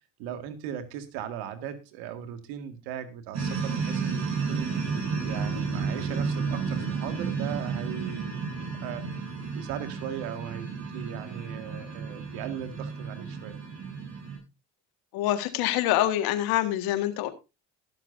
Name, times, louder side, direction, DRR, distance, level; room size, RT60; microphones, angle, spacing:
voice 1, 0.2-4.7 5.2-13.6, right 9 dB, 85° right, 9 dB, 2.0 m, -38 dB
sound 1, 3.3-14.4, right 5 dB, 45° right, 7.9 m, -32 dB
voice 2, 15.1-17.3, left 13 dB, 80° left, 10 dB, 1.8 m, -25 dB
19.5 x 7.5 x 2.7 m, 0.27 s
supercardioid pair, 75°, 37 cm